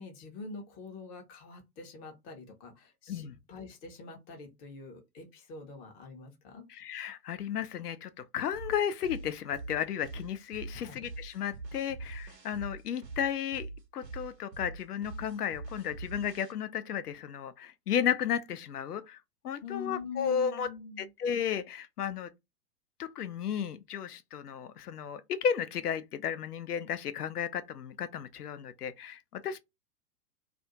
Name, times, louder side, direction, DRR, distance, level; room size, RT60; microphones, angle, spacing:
voice 1, 0.0-6.6 10.7-11.0 19.6-21.1, left 5 dB, 25° left, 0.7 m, -45 dB
voice 2, 6.7-13.7 13.9-19.2 19.4-20.7 21.0-22.3 23.0-29.6, left 8 dB, 70° left, 0.6 m, -33 dB
sound 1, 8.5-16.5, right 3 dB, 90° right, 0.8 m, -43 dB
2.4 x 2.3 x 2.8 m
figure-of-eight pair, 100°, 48 cm